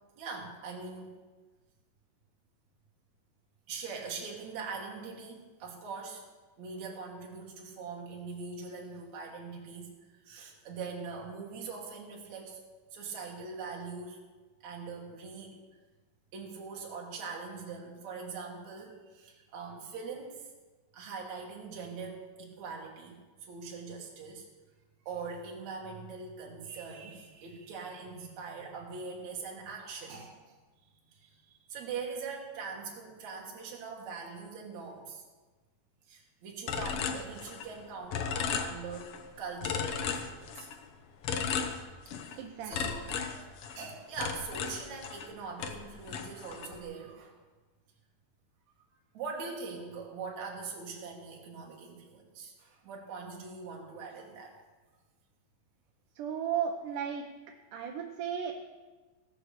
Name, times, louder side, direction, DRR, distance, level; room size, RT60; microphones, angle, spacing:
voice 1, 0.2-1.1 3.7-6.2 6.6-12.6 12.9-14.2 14.6-15.5 16.3-20.5 20.9-23.2 23.5-24.5 25.1-30.6 31.1-35.2 36.1-40.7 42.2-43.5 43.7-47.4 49.1-54.6, right 5 dB, 60° right, -1 dB, 3.1 m, -42 dB
sound 1, 36.7-37.8 38.1-39.2 39.6-40.8 41.2-42.4 42.7-45.3 45.6-46.8, left 7 dB, 70° left, 1.4 m, -35 dB
voice 2, 42.4-42.9 56.2-57.2 57.7-58.5, right 8 dB, 75° right, 2 dB, 2.4 m, -34 dB
17.5 x 6.5 x 6.7 m, 1.3 s
omnidirectional pair, 3.9 m